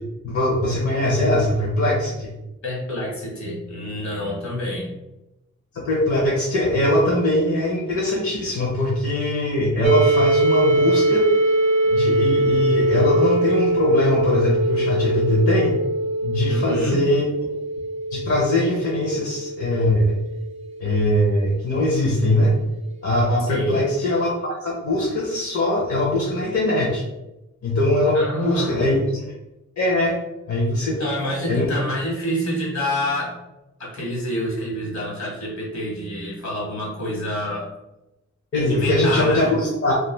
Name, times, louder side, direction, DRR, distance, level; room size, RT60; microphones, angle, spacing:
voice 1, 0.2-2.3 5.7-11.3 11.9-15.8 16.2-17.3 18.1-20.2 20.8-22.5 23.0-27.0 27.6-29.2 29.8-30.2 30.5-31.0 31.5-31.7 38.5-40.0, left 1 dB, 55° left, -4 dB, 0.7 m, -21 dB
voice 2, 2.6-4.9 16.5-17.0 23.5-23.8 28.1-28.9 31.0-33.4 33.8-37.7 38.5-39.5, left 1 dB, 70° left, -3 dB, 1.3 m, -27 dB
sound 1, 9.8-21.5, right 2 dB, 25° right, 0.4 m, -22 dB
2.4 x 2.3 x 3.1 m, 0.93 s
wide cardioid pair, 80°, 29 cm